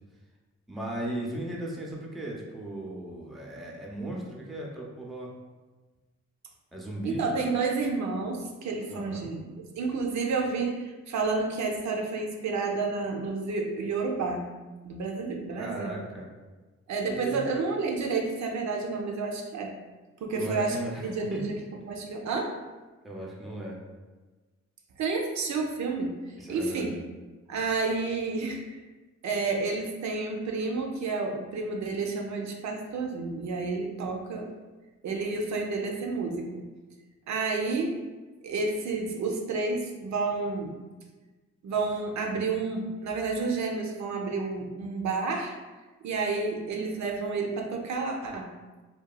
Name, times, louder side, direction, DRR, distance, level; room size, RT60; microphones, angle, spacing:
voice 1, 0.7-5.3 6.7-7.2 8.9-9.3 15.6-16.3 17.0-17.5 20.3-21.4 23.0-23.8 26.4-26.9, right 1 dB, ahead, -3 dB, 0.5 m, -36 dB
voice 2, 7.0-14.5 14.8-16.0 16.9-19.7 20.2-21.6 21.9-22.5 25.0-26.9 27.5-28.8 29.2-34.5 35.0-36.6 37.3-38.0 38.4-40.8 41.6-45.5 46.0-48.5, right 4 dB, 70° right, 1 dB, 0.5 m, -30 dB
2.8 x 2.2 x 2.3 m, 1.3 s
cardioid pair, 70°, 29 cm